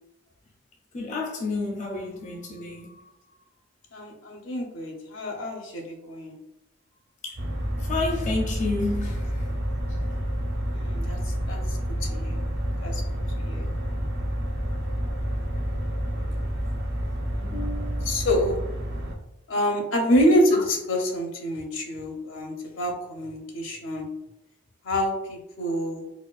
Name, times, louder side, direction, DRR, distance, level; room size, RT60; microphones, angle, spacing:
voice 1, 0.9-2.9 7.2-7.4 7.9-9.5 17.4-18.2 25.7-25.8, left 3 dB, 40° left, 0.4 m, -30 dB
voice 2, 3.9-6.3 10.7-11.8 12.1-12.4 12.8-13.0 13.4-13.7 18.0-18.6 19.5-24.1 24.8-26.0, equal, 75° left, 0.7 m, -26 dB
sound 1, 7.4-19.2, equal, 55° right, 0.5 m, -29 dB
4.2 x 2.3 x 2.3 m
head